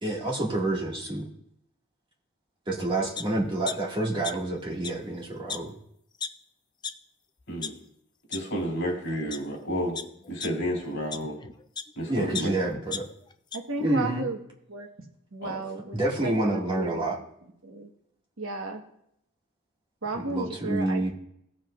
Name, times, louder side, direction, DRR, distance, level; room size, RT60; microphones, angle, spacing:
voice 1, 0.0-1.3 2.7-5.7 12.1-13.1 13.8-14.2 15.9-17.2 20.1-21.1, right 1 dB, 25° right, -4 dB, 2.0 m, -28 dB
sound 1, 3.2-3.3 3.7-4.6 4.8-4.9 5.5-5.6 6.2-6.3 6.8-6.9 7.4-7.7 8.3-8.4 9.1-9.4 10.0-11.9 12.3-13.6 14.0-14.1, left 6 dB, 20° left, 0.4 m, -35 dB
voice 2, 8.3-10.0 10.3-11.4 12.0-12.5 15.4-15.6, equal, 60° left, -1 dB, 3.8 m, -31 dB
voice 3, 13.5-14.4 14.7-14.9 15.3-17.1 17.6-17.9 18.4-18.8 20.0-21.1, right 3 dB, 75° right, 2 dB, 1.3 m, -34 dB
17.0 x 7.5 x 2.5 m, 0.73 s
head